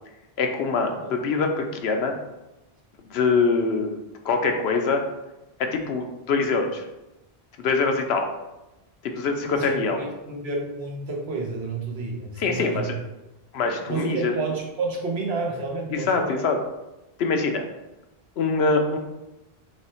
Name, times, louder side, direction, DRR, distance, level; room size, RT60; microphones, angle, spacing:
voice 1, 0.4-2.2 3.1-4.0 4.2-5.0 5.6-6.8 7.6-8.3 9.0-10.0 12.4-12.9 13.5-14.4 15.9-16.6 17.2-17.7 18.4-19.0, left 4 dB, 75° left, 4 dB, 0.9 m, -24 dB
voice 2, 9.4-13.0 13.9-16.4, right 3 dB, 75° right, 0 dB, 1.2 m, -30 dB
3.4 x 3.2 x 4.3 m, 0.97 s
omnidirectional pair, 1.1 m